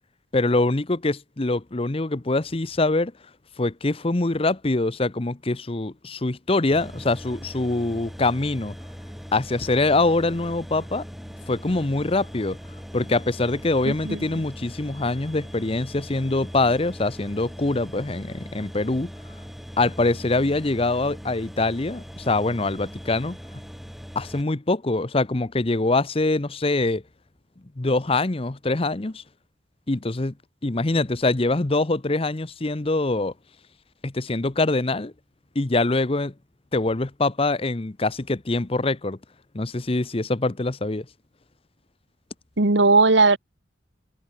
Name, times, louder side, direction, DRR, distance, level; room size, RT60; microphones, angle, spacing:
voice 1, 0.3-3.1 3.6-8.8 9.3-11.0 11.5-12.6 12.9-19.1 19.8-23.4 24.1-27.0 27.8-29.2 29.9-30.3 30.6-33.3 34.0-35.1 35.5-36.3 36.7-39.2 39.5-41.0, left 2 dB, 30° left, 0.8 m, -24 dB
sound 1, 6.7-24.4, equal, ahead, 3.1 m, -40 dB
voice 2, 13.9-14.2 42.6-43.4, right 3 dB, 75° right, 1.7 m, -17 dB
head